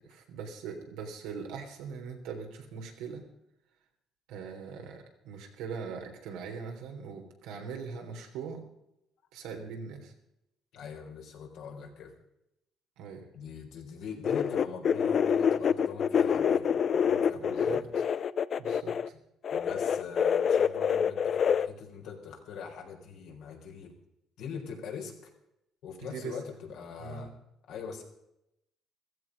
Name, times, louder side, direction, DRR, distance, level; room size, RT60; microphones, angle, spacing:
voice 1, 0.0-3.2 4.3-8.6 9.3-10.1 13.0-13.2 17.3-17.9 18.6-19.1 26.0-26.3 27.0-27.3, right 6 dB, 90° right, 2 dB, 3.5 m, -41 dB
voice 2, 10.7-12.1 13.3-17.9 19.5-23.9 24.4-25.3 25.8-27.3 27.7-28.0, left 6 dB, 75° left, 1 dB, 4.1 m, -42 dB
sound 1, 14.2-19.1 19.4-21.7, left 7 dB, 50° left, 0.6 m, -26 dB
15.0 x 14.5 x 5.4 m, 0.84 s
cardioid pair, 95°, 0 cm